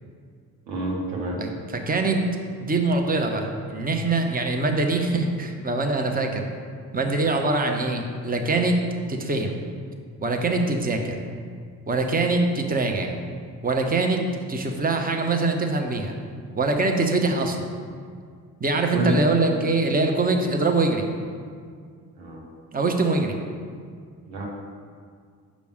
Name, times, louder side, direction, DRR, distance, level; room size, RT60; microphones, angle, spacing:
voice 1, 0.7-1.6 18.9-19.2 22.2-22.4 24.2-24.4, right 1 dB, 85° right, -2 dB, 1.1 m, -28 dB
voice 2, 1.4-2.2 2.6-6.4 6.9-8.8 9.1-9.6 10.2-11.2 11.9-13.2 13.6-16.1 16.6-17.7 18.6-21.1 22.7-23.4, right 3 dB, 15° right, 3 dB, 1.0 m, -23 dB
6.2 x 5.2 x 6.4 m, 2.1 s
figure-of-eight pair, 40°, 50 cm